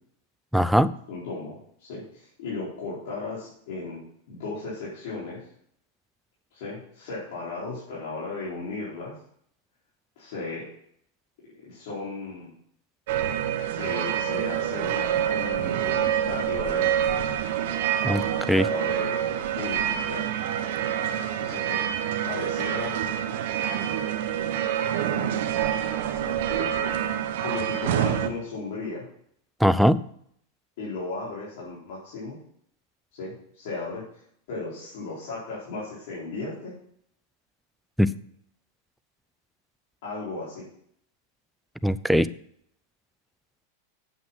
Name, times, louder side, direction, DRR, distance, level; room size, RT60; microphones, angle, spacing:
voice 1, 0.5-0.9 18.0-18.7 29.6-30.0 38.0-38.1 41.8-42.3, equal, ahead, 14 dB, 0.4 m, -20 dB
voice 2, 1.1-5.4 6.5-9.1 10.2-10.7 11.6-12.5 13.6-17.0 18.6-19.2 19.6-20.4 21.4-22.9 25.0-25.4 26.2-29.1 30.8-32.4 33.1-34.0 34.5-36.7 40.0-40.6, left 3 dB, 65° left, -8 dB, 4.4 m, -36 dB
sound 1, 13.1-28.3, right 10 dB, 65° right, 1.1 m, -27 dB
8.8 x 7.5 x 5.8 m, 0.67 s
supercardioid pair, 130°, 0 cm